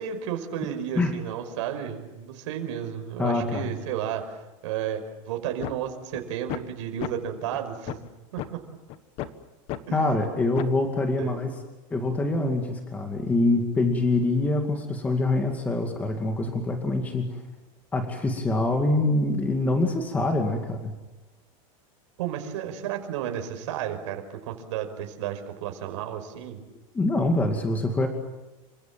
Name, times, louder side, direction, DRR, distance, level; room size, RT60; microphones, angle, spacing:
voice 1, 0.0-4.4 4.6-8.0 8.3-8.6 9.9-10.0 10.5-10.6 11.2-11.4 22.2-26.6, right 9 dB, 60° right, 5 dB, 5.6 m, -32 dB
voice 2, 3.2-3.7 9.9-11.5 11.9-17.4 17.9-20.9 26.9-28.1, left 2 dB, 10° left, 4 dB, 2.3 m, -25 dB
sound 1, 5.6-5.7 6.1-6.2 6.5-6.7 7.0-7.1 7.5-7.6 7.9-8.1 8.4-8.5 8.9-9.3 9.7-9.8 10.2-10.3 10.6-10.8, left 13 dB, 35° left, 1.3 m, -33 dB
28.5 x 26.5 x 7.6 m, 1.1 s
supercardioid pair, 175°, 17 cm